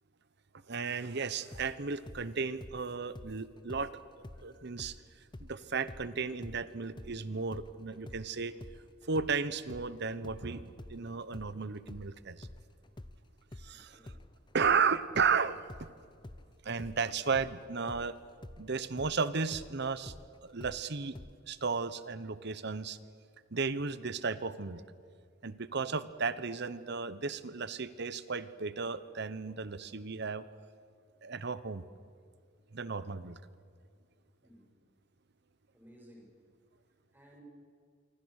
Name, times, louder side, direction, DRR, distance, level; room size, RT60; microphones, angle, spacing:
voice 1, 0.7-3.9 4.4-4.9 5.4-8.5 9.1-12.5 13.6-14.0 14.5-15.9 16.6-18.2 18.6-20.1 20.4-21.2 21.5-23.0 23.5-24.8 25.4-30.4 31.2-31.8 32.7-33.4, right 5 dB, 55° right, 14 dB, 1.0 m, -34 dB
sound 1, 1.5-5.0 5.3-13.2 13.5-21.3, left 1 dB, 25° left, 0.7 m, -49 dB
voice 2, 13.7-14.2 34.4-34.7 35.7-36.4 37.1-37.4, equal, 10° right, -1 dB, 6.8 m, -58 dB
27.0 x 24.5 x 6.6 m, 2.1 s
head